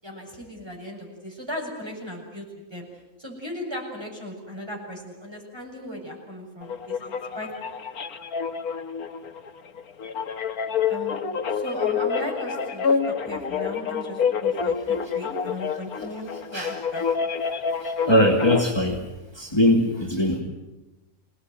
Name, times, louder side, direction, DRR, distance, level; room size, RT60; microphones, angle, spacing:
voice 1, 0.0-2.4 2.7-2.9 3.2-7.5 10.9-11.3 11.5-17.0, equal, 15° right, -1 dB, 7.2 m, -36 dB
sound 1, 6.6-18.7, left 6 dB, 85° left, 1.7 m, -27 dB
voice 2, 17.8-19.0 19.3-20.4, left 1 dB, 15° left, -1 dB, 2.8 m, -21 dB
28.0 x 19.0 x 9.3 m, 1.1 s
omnidirectional pair, 1.5 m